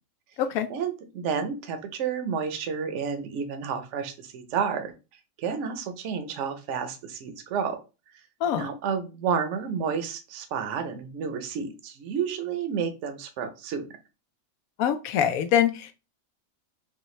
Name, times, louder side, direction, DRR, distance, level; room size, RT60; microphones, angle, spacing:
voice 1, 0.7-4.9 5.4-7.8 8.5-13.8, right 6 dB, 65° right, 7 dB, 0.9 m, -30 dB
voice 2, 14.8-15.9, left 9 dB, 85° left, 9 dB, 1.0 m, -24 dB
5.5 x 2.1 x 3.1 m, 0.30 s
omnidirectional pair, 1.5 m